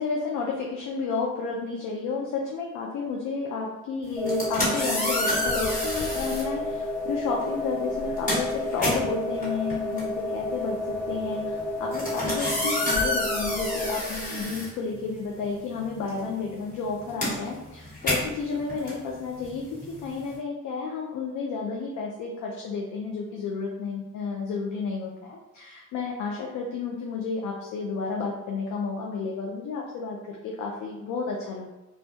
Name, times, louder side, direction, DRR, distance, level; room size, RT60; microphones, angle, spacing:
voice 1, 0.0-19.6 20.0-31.7, left 4 dB, 80° left, -2 dB, 0.5 m, -31 dB
sound 1, 4.1-6.5 7.4-7.6 7.9-15.4 15.7-20.4, left 1 dB, 25° left, 1.3 m, -30 dB
sound 2, 4.2-14.0, left 2 dB, 5° left, 0.9 m, -31 dB
2.2 x 2.1 x 2.6 m, 1.0 s
cardioid pair, 90°, 30 cm